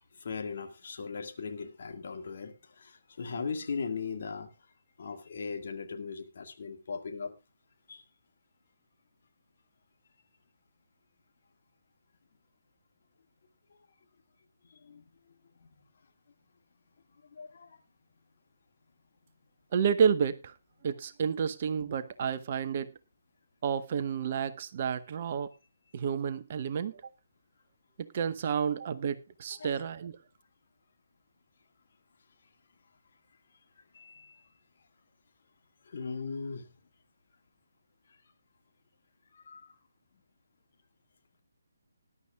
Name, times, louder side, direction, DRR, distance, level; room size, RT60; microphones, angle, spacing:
voice 1, 0.0-4.5 5.0-7.4 7.9-8.0 14.7-15.0 15.6-15.7 17.2-17.8 21.4-21.5 29.6-29.9 33.9-34.5 35.9-36.7 39.3-39.7, left 5 dB, 45° left, 1.9 m, -39 dB
voice 2, 19.7-20.5 20.8-22.9 23.6-25.5 25.9-27.0 28.0-30.2, right 7 dB, 35° right, 0.8 m, -30 dB
19.5 x 11.0 x 2.3 m
figure-of-eight pair, 140°, 0 cm